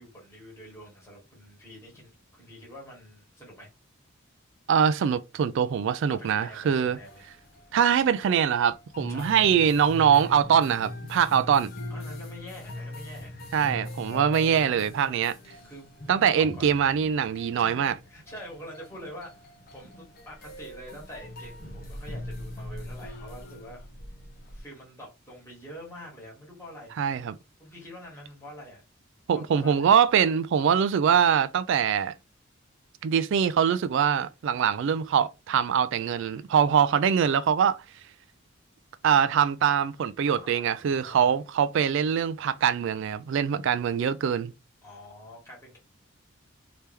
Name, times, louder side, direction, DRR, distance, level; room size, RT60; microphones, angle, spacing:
voice 1, 0.0-3.7 6.1-7.2 9.1-9.3 11.9-13.4 15.6-15.9 16.1-16.8 17.6-23.8 24.5-27.0 27.6-28.8 29.3-29.9 40.2-41.3 44.8-45.8, equal, 15° left, 1.8 m, -46 dB
voice 2, 4.7-7.0 7.7-11.7 13.5-15.3 16.1-17.9 27.0-27.4 29.3-32.1 33.0-37.8 39.0-44.5, right 8 dB, 60° right, 0.3 m, -23 dB
sound 1, 6.8-24.6, left 1 dB, 45° left, 0.9 m, -42 dB
3.3 x 2.9 x 3.4 m
head